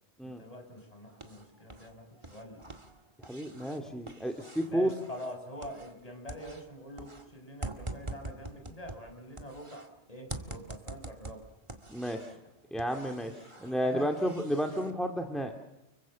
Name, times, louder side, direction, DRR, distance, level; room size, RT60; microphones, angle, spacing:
voice 1, 0.2-2.6 4.7-11.5 12.3-12.4 13.5-14.1 14.7-14.8, equal, 35° left, 4 dB, 5.5 m, -45 dB
sound 1, 0.8-1.9 2.2-6.0 6.3-9.9 10.3-12.4 12.8-14.9, right 2 dB, 25° right, 2.0 m, -45 dB
voice 2, 3.2-4.9 11.9-12.2 12.7-13.3 13.6-15.5, equal, ahead, 4 dB, 2.1 m, -31 dB
29.5 x 23.0 x 7.5 m, 0.90 s
omnidirectional pair, 1.1 m